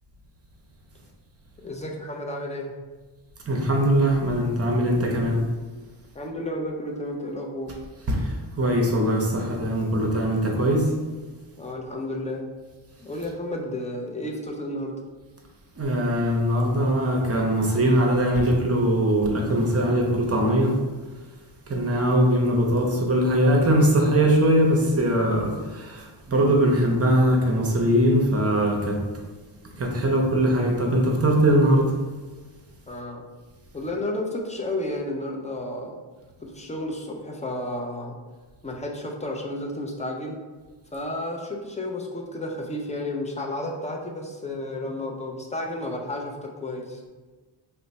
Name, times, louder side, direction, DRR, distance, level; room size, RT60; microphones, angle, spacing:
voice 1, 1.6-2.7 6.1-7.7 11.6-12.5 13.0-14.9 32.9-33.2 33.7-36.0 36.4-38.2 38.6-40.4 40.9-47.0, left 1 dB, 15° left, 0 dB, 0.4 m, -32 dB
voice 2, 3.5-5.4 8.1-8.3 8.6-10.8 15.8-20.7 21.7-29.0 29.8-31.9, right 1 dB, 30° right, 1 dB, 0.6 m, -21 dB
3.0 x 2.1 x 4.1 m, 1.3 s
cardioid pair, 95°, 48 cm